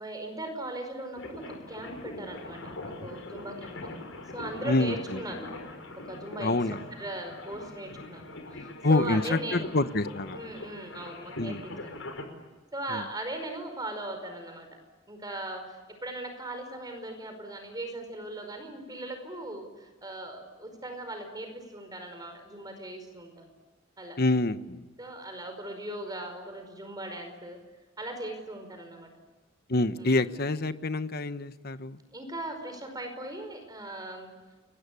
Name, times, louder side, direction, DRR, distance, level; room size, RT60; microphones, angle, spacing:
voice 1, 0.0-4.0 4.3-5.6 6.0-9.7 10.3-12.1 12.7-14.7 15.1-23.5 24.0-24.2 25.0-27.6 28.0-29.1 30.0-30.2 32.1-34.3, right 1 dB, 20° right, 6 dB, 5.0 m, -39 dB
sound 1, 1.2-12.2, left 2 dB, 75° left, 5.5 m, -42 dB
voice 2, 4.6-5.2 6.4-6.8 8.8-10.4 11.4-11.8 12.9-13.0 24.2-24.8 29.7-32.0, left 2 dB, 50° left, 11 dB, 1.2 m, -27 dB
29.5 x 23.0 x 8.5 m, 1.2 s
head